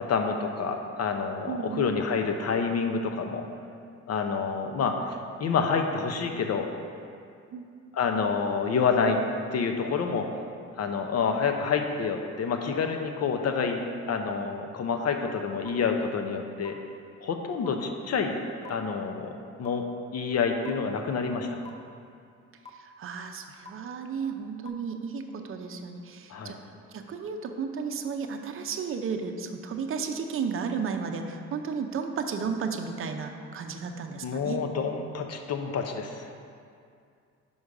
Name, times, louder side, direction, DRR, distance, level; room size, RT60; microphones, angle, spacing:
voice 1, 0.0-3.5 4.1-6.7 7.9-9.2 9.5-10.3 10.8-16.8 17.2-18.4 18.7-19.3 19.6-19.8 20.1-21.6 26.3-26.5 34.2-36.3, left 5 dB, 55° left, 5 dB, 0.7 m, -28 dB
voice 2, 1.5-1.9 7.5-7.6 23.0-26.6 26.9-34.6, right 5 dB, 45° right, 5 dB, 0.6 m, -33 dB
sound 1, 15.6-15.7 16.6-16.7 17.6-17.7 18.6-18.7 19.6-19.7 20.6-20.7 21.6-21.7 22.6-22.7 23.6-23.7 24.6-24.7, left 5 dB, 20° left, 0.5 m, -43 dB
5.5 x 5.1 x 4.8 m, 2.3 s
cardioid pair, 90°, 30 cm